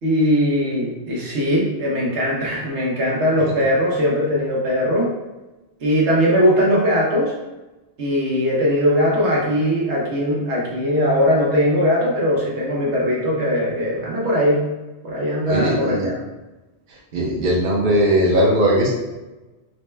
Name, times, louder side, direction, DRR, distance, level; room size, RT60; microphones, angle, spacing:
voice 1, 0.0-5.1 5.8-7.3 8.0-14.6 15.0-16.2, equal, 80° right, -4 dB, 1.2 m, -20 dB
voice 2, 15.5-16.1 17.1-18.9, equal, 50° right, -3 dB, 0.9 m, -18 dB
4.2 x 2.1 x 3.2 m, 1.1 s
omnidirectional pair, 1.1 m